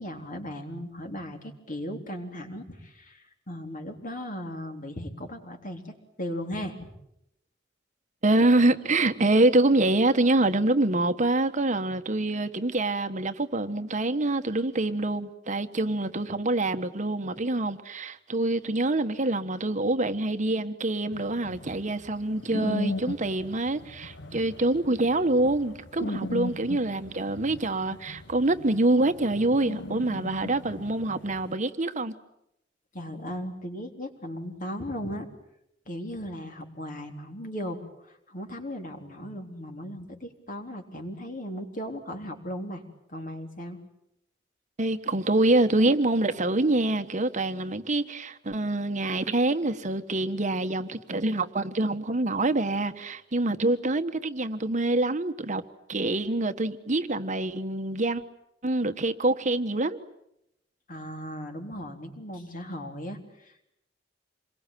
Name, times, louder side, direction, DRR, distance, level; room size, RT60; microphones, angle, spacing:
voice 1, 0.0-6.9 32.9-35.3 35.9-42.8 43.1-43.8 60.9-63.6, equal, 45° left, 3.8 m, -37 dB
voice 2, 8.2-32.1 44.8-55.6 55.9-58.2 58.6-60.0, right 2 dB, 40° right, 1.2 m, -25 dB
sound 1, 21.1-31.5, left 2 dB, 80° left, 1.5 m, -38 dB
27.5 x 22.5 x 9.2 m
head